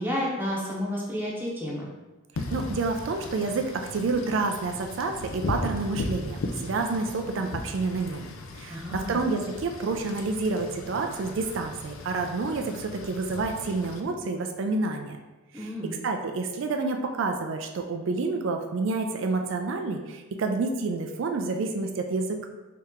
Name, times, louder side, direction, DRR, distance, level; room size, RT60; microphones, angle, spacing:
voice 1, 0.0-1.9 8.7-9.2 15.5-15.9, equal, 10° right, -4 dB, 0.8 m, -31 dB
Wind / Rain, 2.4-14.0, left 2 dB, 85° left, 0.4 m, -37 dB
voice 2, 2.5-8.3 8.6-15.2 15.5-22.5, right 3 dB, 65° right, 4 dB, 0.4 m, -29 dB
3.2 x 2.9 x 3.6 m, 1.1 s
head